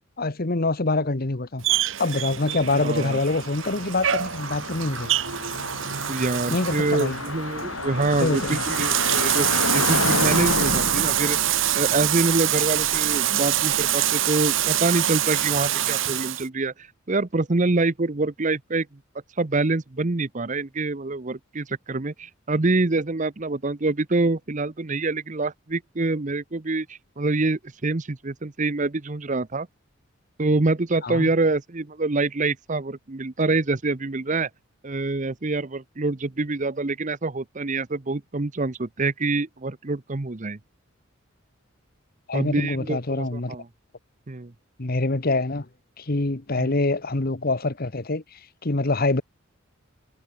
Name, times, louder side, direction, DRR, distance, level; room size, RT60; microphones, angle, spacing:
voice 1, 0.2-1.7 2.0-5.1 6.5-7.2 8.2-8.6 31.0-31.3 42.3-43.6 44.8-45.7 46.0-49.2, left 2 dB, 45° left, 1.2 m, -25 dB
Bathtub (filling or washing), 1.6-16.5, right 12 dB, 65° right, 1.1 m, -25 dB
Car passing by, 2.7-14.7, left 3 dB, 85° left, 5.2 m, -31 dB
voice 2, 2.7-3.2 6.1-11.4 11.7-18.9 19.4-29.7 30.4-34.5 34.8-40.6 42.3-43.7 44.3-44.5 46.6-46.7, right 3 dB, 35° right, 0.8 m, -26 dB
head